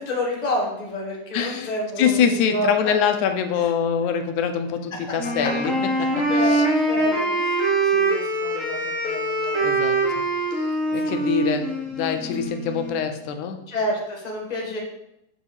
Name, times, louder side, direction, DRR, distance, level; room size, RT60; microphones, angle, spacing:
voice 1, 0.0-2.7 4.9-5.1 5.4-5.5 6.0-6.6 6.9-9.7 11.0-11.2 13.7-14.8, left 1 dB, 15° left, -2 dB, 1.5 m, -29 dB
voice 2, 1.3-6.6 9.6-10.2 10.5-13.6, left 7 dB, 90° left, 7 dB, 2.3 m, -25 dB
Wind instrument woodwind instrument, 5.1-13.0, right 2 dB, ahead, 2.1 m, -23 dB
7.8 x 7.3 x 4.8 m, 0.83 s
omnidirectional pair, 3.3 m